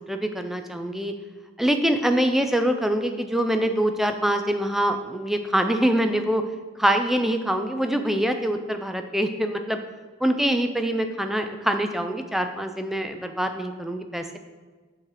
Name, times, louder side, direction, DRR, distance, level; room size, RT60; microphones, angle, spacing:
voice 1, 0.1-1.1 1.6-6.4 6.8-9.8 10.2-14.4, right 1 dB, ahead, 6 dB, 0.3 m, -24 dB
7.1 x 3.2 x 6.1 m, 1.4 s
head